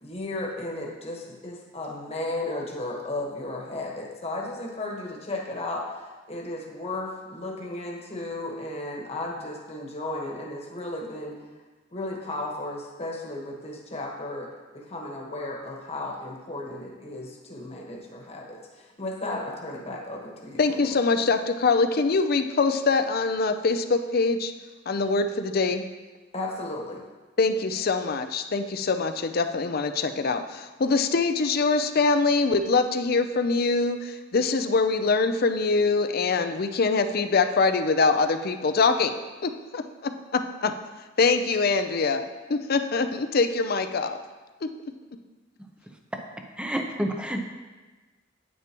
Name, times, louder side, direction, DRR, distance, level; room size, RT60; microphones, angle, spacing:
voice 1, 0.0-11.4 11.9-14.5 14.7-21.0 26.3-27.0, left 2 dB, 35° left, -1 dB, 1.4 m, -34 dB
voice 2, 20.6-24.5 24.9-25.8 27.4-39.1 39.4-40.7 41.2-44.2 44.6-44.7, left 4 dB, 55° left, 8 dB, 0.5 m, -24 dB
voice 3, 46.6-47.4, right 1 dB, 5° right, 3 dB, 0.7 m, -29 dB
9.4 x 9.0 x 3.0 m, 1.3 s
head